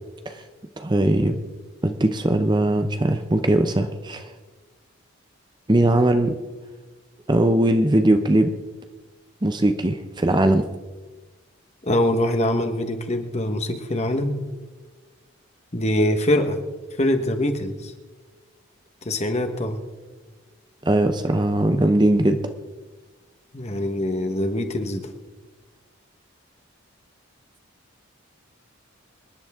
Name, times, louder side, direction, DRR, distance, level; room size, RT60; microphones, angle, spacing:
voice 1, 0.8-1.4 1.8-4.3 5.7-6.4 7.3-8.5 9.4-10.6 20.8-22.4, right 1 dB, 20° right, 7 dB, 0.6 m, -20 dB
voice 2, 11.8-14.4 15.7-16.6 17.0-17.9 19.0-19.8 23.5-25.1, left 1 dB, 30° left, 6 dB, 1.2 m, -23 dB
26.0 x 11.0 x 3.6 m, 1.3 s
head